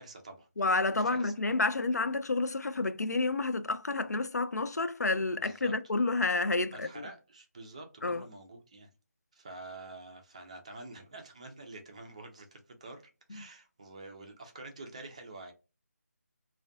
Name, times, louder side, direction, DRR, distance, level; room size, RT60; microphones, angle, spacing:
voice 1, 0.0-0.5 0.9-1.3 5.3-5.7 6.7-8.9 9.3-13.0 13.3-15.5, right 2 dB, 25° right, 0.4 m, -47 dB
voice 2, 0.6-7.1 8.0-8.2, left 3 dB, 85° left, 0.3 m, -30 dB
2.4 x 2.1 x 2.4 m
figure-of-eight pair, 160°, 9 cm